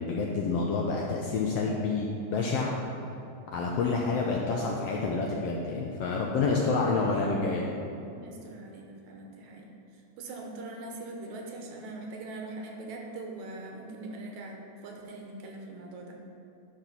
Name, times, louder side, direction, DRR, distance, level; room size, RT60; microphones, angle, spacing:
voice 1, 0.0-2.8 3.5-7.7, left 4 dB, 75° left, -2 dB, 1.5 m, -28 dB
voice 2, 8.1-9.7 10.2-16.2, right 2 dB, 75° right, 1 dB, 2.3 m, -42 dB
11.0 x 4.3 x 5.7 m, 2.6 s
omnidirectional pair, 3.4 m